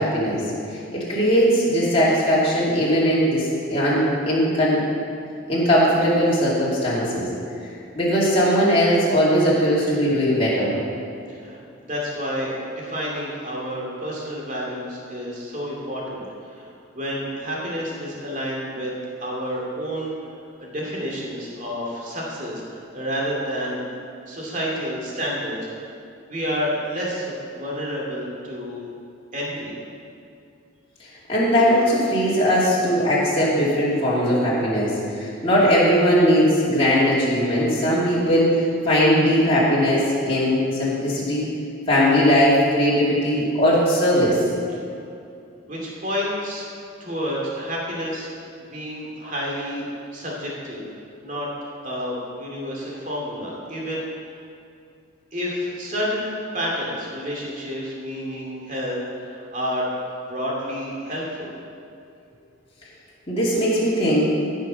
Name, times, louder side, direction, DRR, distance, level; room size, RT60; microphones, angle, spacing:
voice 1, 0.0-4.8 5.5-7.3 8.0-10.8 31.3-41.5 41.9-44.4 63.3-64.3, equal, 30° left, -8 dB, 2.5 m, -19 dB
voice 2, 11.3-11.6 11.9-18.9 19.2-20.1 20.6-23.8 24.3-25.9 26.3-28.8 29.3-29.7 45.7-46.6 47.0-48.3 48.6-49.8 50.1-50.8 51.2-51.5 51.8-54.0 55.3-59.9 60.3-61.5, equal, 40° right, -4 dB, 2.4 m, -29 dB
14.5 x 5.8 x 5.6 m, 2.5 s
head